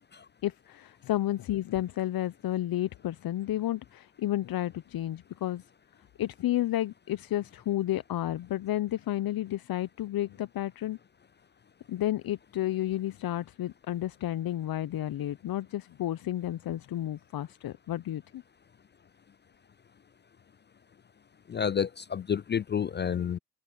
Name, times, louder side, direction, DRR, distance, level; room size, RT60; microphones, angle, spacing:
voice 1, 0.4-5.6 6.2-11.0 11.9-18.4 23.1-23.3, left 13 dB, 60° left, 0.8 m, -31 dB
voice 2, 21.5-23.4, left 7 dB, 30° left, 0.4 m, -30 dB
open air
supercardioid pair, 50°, 40 cm